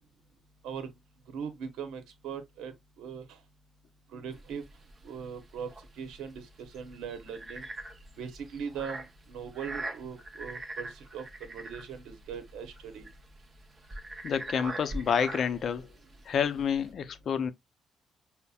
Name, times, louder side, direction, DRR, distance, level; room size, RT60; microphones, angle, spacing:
voice 1, 1.3-3.4 4.1-4.6 5.0-7.7 8.2-13.1, right 7 dB, 85° right, 0.8 m, -40 dB
sound 1, 4.3-16.9, right 2 dB, 30° right, 0.8 m, -43 dB
voice 2, 14.2-15.9 16.2-17.5, left 7 dB, 60° left, 0.5 m, -29 dB
5.4 x 2.1 x 2.3 m
cardioid pair, 90°, 0 cm